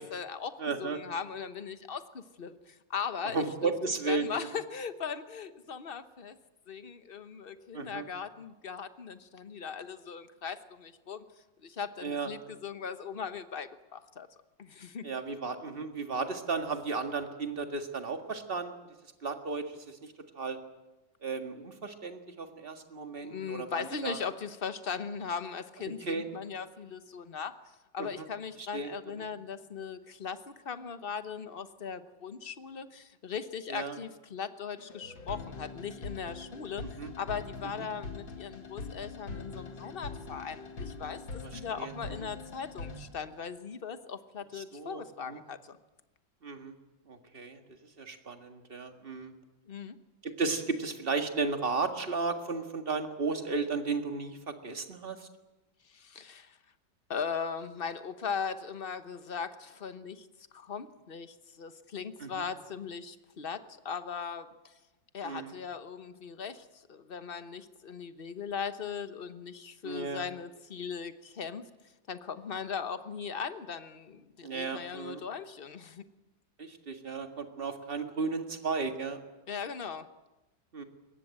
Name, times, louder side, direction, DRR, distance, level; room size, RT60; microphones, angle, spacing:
voice 1, 0.0-3.7 4.1-6.4 6.7-11.2 11.6-14.3 14.6-15.1 23.2-27.5 27.9-45.8 49.7-50.0 55.8-56.6 57.1-60.3 60.5-64.8 65.1-71.6 72.1-76.0 79.5-80.1, left 6 dB, 40° left, 11 dB, 1.0 m, -39 dB
voice 2, 0.6-1.0 3.3-4.3 7.7-8.1 12.0-12.3 15.0-18.7 19.2-20.6 21.2-24.2 26.0-26.3 28.0-28.3 28.6-28.9 29.2-29.3 33.7-34.0 37.0-37.1 37.8-37.9 41.4-41.9 44.6-45.0 45.3-45.4 46.4-46.7 47.1-47.6 48.0-49.3 50.2-55.3 62.2-62.4 65.2-65.6 69.8-70.3 74.4-75.2 76.6-79.2 80.7-80.8, right 4 dB, 30° right, 6 dB, 1.9 m, -34 dB
sound 1, 34.8-43.1, left 3 dB, 90° left, 3.8 m, -43 dB
22.5 x 19.0 x 8.9 m, 1.1 s
omnidirectional pair, 2.0 m